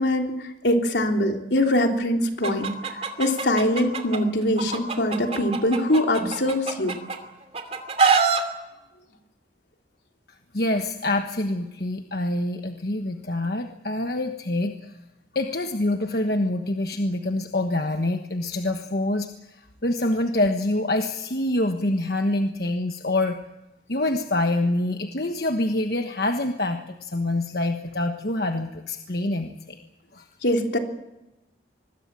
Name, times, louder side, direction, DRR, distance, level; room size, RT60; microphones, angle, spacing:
voice 1, 0.0-2.7 3.2-6.9 30.4-30.8, left 1 dB, 75° left, 2 dB, 3.4 m, -23 dB
Chicken rooster, 2.4-4.2 4.6-7.2 7.5-8.4, right 5 dB, 35° right, 2.7 m, -24 dB
voice 2, 10.5-14.9 15.3-23.4 23.9-29.8 30.1-30.2, left 1 dB, 55° left, 5 dB, 1.3 m, -26 dB
25.5 x 21.5 x 7.6 m, 0.98 s
head